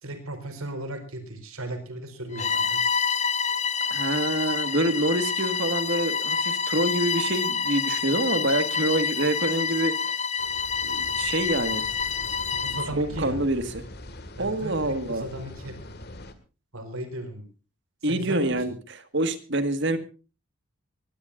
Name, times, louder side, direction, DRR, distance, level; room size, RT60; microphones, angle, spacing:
voice 1, 0.0-2.8 12.5-13.4 14.4-15.8 16.7-17.4 18.1-18.6, right 1 dB, 80° right, 8 dB, 4.7 m, -36 dB
Bowed string instrument, 2.3-12.9, left 5 dB, 30° left, 0.9 m, -27 dB
voice 2, 3.9-10.2 10.8-11.8 12.9-13.9 14.4-15.3 18.0-20.0, right 1 dB, 55° right, 10 dB, 1.7 m, -26 dB
sound 1, 10.4-16.3, left 1 dB, 45° left, 2.0 m, -42 dB
22.5 x 17.5 x 2.6 m, 0.34 s
head